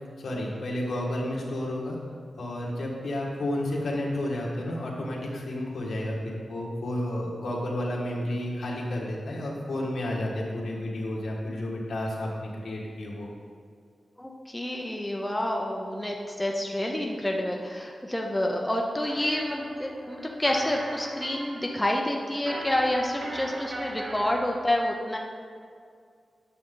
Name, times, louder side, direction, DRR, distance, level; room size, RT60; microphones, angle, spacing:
voice 1, 0.2-2.0 2.4-13.3, left 1 dB, 70° left, -3 dB, 1.6 m, -31 dB
voice 2, 14.2-25.2, left 1 dB, 10° left, 0 dB, 0.5 m, -28 dB
sound 1, 19.0-24.4, right 1 dB, 55° right, 0.9 m, -39 dB
8.7 x 6.6 x 3.8 m, 2.2 s
wide cardioid pair, 160°, 0 cm